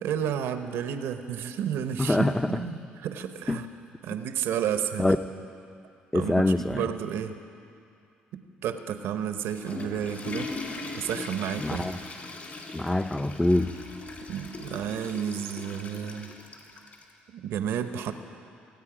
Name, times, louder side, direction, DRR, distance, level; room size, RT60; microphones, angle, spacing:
voice 1, 0.0-3.7 4.0-5.1 6.1-7.4 8.3-10.5 10.9-11.8 14.3-16.3 17.3-18.1, right 9 dB, 75° right, 9 dB, 0.9 m, -31 dB
voice 2, 2.0-2.6 3.5-3.6 5.0-5.2 6.1-6.9 11.6-12.0 12.7-13.8, left 1 dB, 10° left, 10 dB, 0.6 m, -25 dB
Water / Toilet flush, 9.3-17.1, left 3 dB, 45° left, 2.6 m, -40 dB
25.5 x 8.7 x 5.0 m, 2.5 s
supercardioid pair, 65°, 4 cm